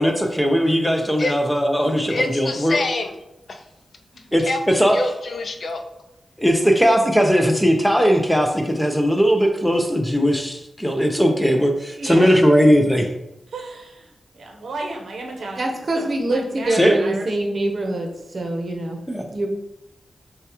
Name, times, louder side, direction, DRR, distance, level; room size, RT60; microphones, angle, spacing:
voice 1, 0.0-2.8 4.3-5.0 6.4-13.1 16.7-17.0 19.1-19.2, equal, 5° left, 4 dB, 0.6 m, -18 dB
voice 2, 2.1-3.1 3.5-3.6 4.4-5.8, left 2 dB, 60° left, 4 dB, 0.5 m, -26 dB
voice 3, 11.9-12.5 13.5-17.4, right 2 dB, 80° right, 1 dB, 0.8 m, -34 dB
voice 4, 15.6-19.0 19.3-19.5, right 1 dB, 50° right, 2 dB, 0.8 m, -24 dB
6.4 x 2.4 x 2.9 m, 0.90 s
wide cardioid pair, 80°, 0 cm